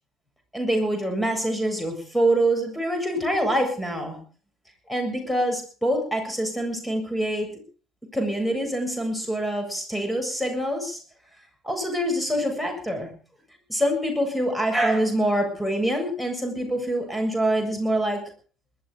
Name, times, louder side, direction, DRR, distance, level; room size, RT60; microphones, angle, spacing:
voice 1, 0.5-4.2 4.9-7.5 8.1-11.0 11.6-13.1 13.7-18.2, right 1 dB, 5° left, 5 dB, 7.4 m, -25 dB
20.5 x 12.5 x 5.1 m, 0.41 s
figure-of-eight pair, 55°, 0 cm